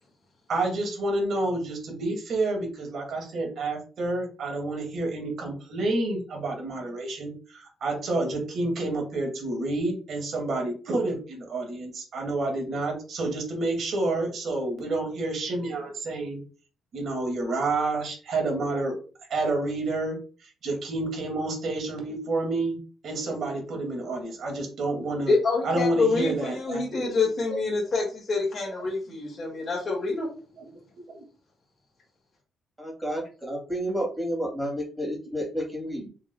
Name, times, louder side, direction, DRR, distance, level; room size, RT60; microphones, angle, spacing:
voice 1, 0.5-16.4 16.9-18.9 19.3-22.8 23.0-25.3 25.6-27.3 30.2-30.3 30.6-30.7 31.1-31.2, right 2 dB, 60° right, 1 dB, 2.1 m, -29 dB
voice 2, 25.3-30.3, left 3 dB, 40° left, -4 dB, 1.8 m, -26 dB
voice 3, 32.8-36.1, equal, 10° right, -2 dB, 2.3 m, -31 dB
4.8 x 3.7 x 2.2 m, 0.36 s
cardioid pair, 90°, 0 cm